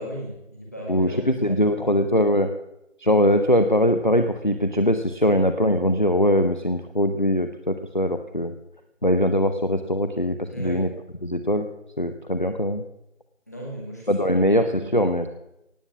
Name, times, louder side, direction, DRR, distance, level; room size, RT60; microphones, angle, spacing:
voice 1, 0.0-2.0 5.2-5.4 10.5-10.9 13.5-14.8, right 1 dB, 15° left, -2 dB, 1.9 m, -37 dB
voice 2, 0.9-2.5 3.0-8.5 9.0-10.9 11.2-11.7 12.0-12.8 14.1-15.3, equal, 40° left, 8 dB, 0.7 m, -21 dB
17.5 x 8.5 x 7.2 m, 0.87 s
figure-of-eight pair, 170°, 38 cm